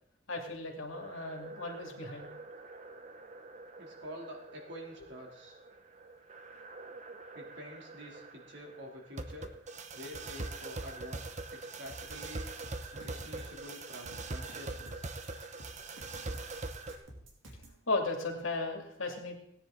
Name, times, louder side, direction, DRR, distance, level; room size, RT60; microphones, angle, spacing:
voice 1, 0.3-2.3 17.9-19.4, left 3 dB, 80° left, 1 dB, 2.5 m, -35 dB
sound 1, 0.9-17.0, right 3 dB, 35° right, 0.8 m, -44 dB
voice 2, 3.8-5.6 7.3-9.5 9.9-12.5 12.9-15.1, equal, 60° right, -1 dB, 3.1 m, -48 dB
sound 2, 11.9-17.8, right 1 dB, 80° right, 2.9 m, -51 dB
17.0 x 9.9 x 3.9 m, 0.71 s
head